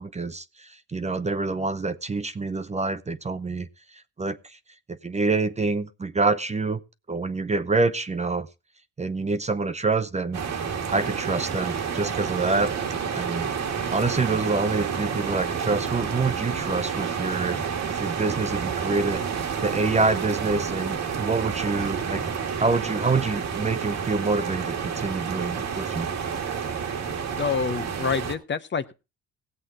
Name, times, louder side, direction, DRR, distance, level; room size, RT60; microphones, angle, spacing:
voice 1, 0.0-3.7 4.2-4.6 4.9-6.8 7.1-8.5 9.0-10.4 10.9-12.7 13.1-13.6 13.9-17.6 17.9-19.3 19.6-22.2 22.6-26.1, right 3 dB, 20° right, 12 dB, 0.7 m, -26 dB
sound 1, 10.3-28.4, right 6 dB, 65° right, 1.7 m, -29 dB
voice 2, 27.4-28.9, left 5 dB, 40° left, 11 dB, 0.9 m, -27 dB
17.5 x 7.8 x 3.7 m, 0.29 s
cardioid pair, 90°, 30 cm